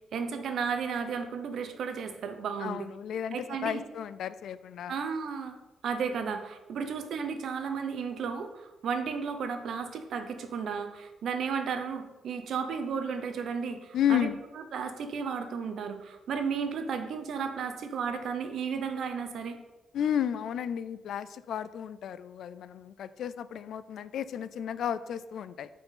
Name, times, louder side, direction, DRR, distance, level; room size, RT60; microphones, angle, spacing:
voice 1, 0.1-2.9 3.3-3.8 4.9-5.6 5.8-14.3 14.7-19.6, right 6 dB, 65° right, 7 dB, 1.0 m, -33 dB
voice 2, 2.6-5.0 13.9-14.4 19.9-25.7, left 9 dB, 70° left, 15 dB, 0.4 m, -32 dB
8.8 x 4.7 x 5.6 m, 1.0 s
cardioid pair, 135°, 0 cm